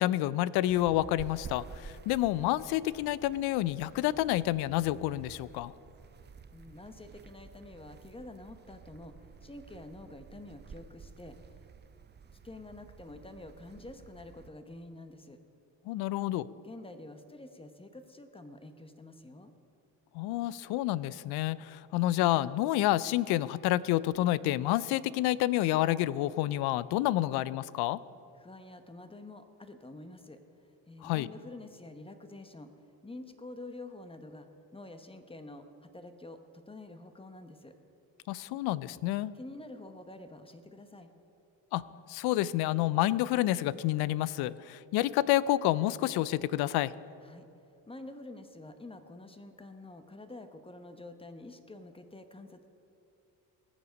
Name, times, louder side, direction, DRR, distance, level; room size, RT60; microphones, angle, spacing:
voice 1, 0.0-5.7 15.9-16.5 20.1-28.0 31.0-31.3 38.3-39.3 41.7-41.8 42.1-46.9, left 15 dB, 75° left, 19 dB, 0.5 m, -29 dB
sound 1, 0.7-14.5, right 6 dB, 25° right, 0.6 m, -51 dB
voice 2, 6.5-11.4 12.4-15.4 16.6-19.5 28.4-32.7 33.0-34.5 34.7-37.7 39.3-41.1 47.2-47.5 47.9-52.7, left 2 dB, 15° left, 8 dB, 1.0 m, -48 dB
19.0 x 7.0 x 5.2 m, 2.7 s
supercardioid pair, 85°, 39 cm